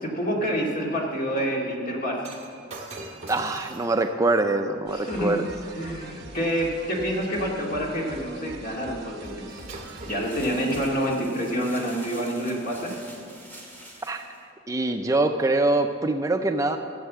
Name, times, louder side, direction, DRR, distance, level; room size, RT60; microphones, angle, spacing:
voice 1, 0.0-2.2 4.9-5.4 5.7-9.7 10.0-13.0, equal, 45° left, -2 dB, 2.2 m, -27 dB
Shatter, 2.2-6.6 9.2-9.4 9.7-11.2 11.9-12.1, right 2 dB, 35° right, 1.8 m, -44 dB
voice 2, 3.3-5.5 14.0-14.2 14.7-16.8, right 2 dB, 15° right, 6 dB, 0.4 m, -24 dB
sound 1, 4.9-11.1, right 2 dB, 55° right, 1.3 m, -43 dB
sound 2, 9.5-14.4, right 1 dB, 10° left, 2.1 m, -46 dB
15.0 x 7.5 x 7.3 m, 2.5 s
head